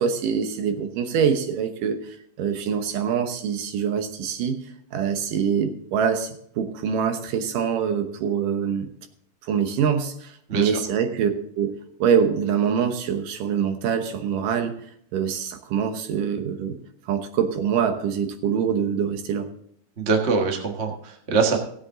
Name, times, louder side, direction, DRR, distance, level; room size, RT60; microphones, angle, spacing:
voice 1, 0.0-4.6 4.9-8.9 9.4-11.3 11.6-11.7 12.0-14.8 15.1-16.8 17.1-19.5, right 7 dB, 75° right, 7 dB, 2.6 m, -24 dB
voice 2, 20.0-21.6, right 4 dB, 60° right, 2 dB, 0.7 m, -23 dB
17.0 x 7.9 x 3.8 m, 0.67 s
omnidirectional pair, 3.9 m